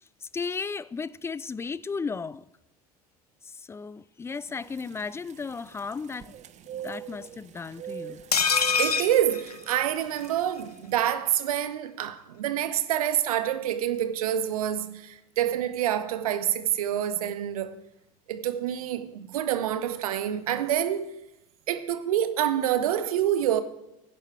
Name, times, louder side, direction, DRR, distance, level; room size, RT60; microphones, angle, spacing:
voice 1, 0.2-2.5 3.4-6.4 6.7-8.2, left 5 dB, 15° left, 0.3 m, -35 dB
sound 1, 4.4-11.0, right 10 dB, 40° right, 0.8 m, -43 dB
sound 2, 8.3-10.3 10.6-10.7 10.9-11.1, left 6 dB, 85° left, 0.6 m, -26 dB
voice 2, 8.7-17.8 18.3-21.2 21.7-23.6, right 11 dB, 70° right, 0.9 m, -27 dB
16.5 x 10.5 x 3.4 m
figure-of-eight pair, 70°, 19 cm